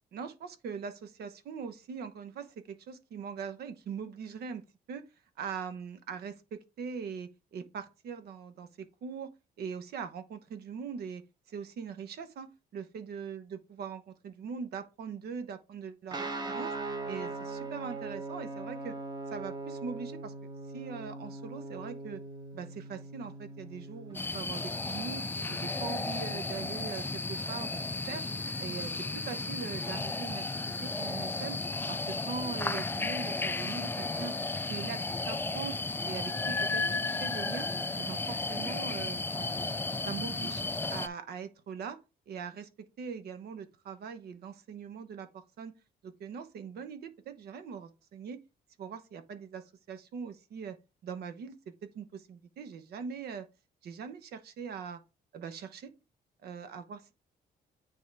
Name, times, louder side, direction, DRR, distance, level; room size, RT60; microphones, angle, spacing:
voice 1, 0.1-5.0 5.4-9.3 9.6-12.5 12.7-13.4 13.8-16.7 17.1-19.0 19.3-20.3 20.7-22.2 22.5-28.2 28.6-31.6 31.9-34.3 34.7-35.8 36.0-37.7 38.0-39.8 40.0-40.6 40.9-42.0 42.3-45.7 46.0-48.4 48.8-50.8 51.0-53.5 53.8-55.0 55.3-55.9 56.4-57.1, right 6 dB, 75° right, 1.0 m, -41 dB
Guitar, 16.1-24.2, right 3 dB, 25° right, 1.2 m, -40 dB
sound 1, 24.1-41.1, left 3 dB, 15° left, 0.4 m, -34 dB
9.0 x 3.7 x 3.4 m
cardioid pair, 110°, 17 cm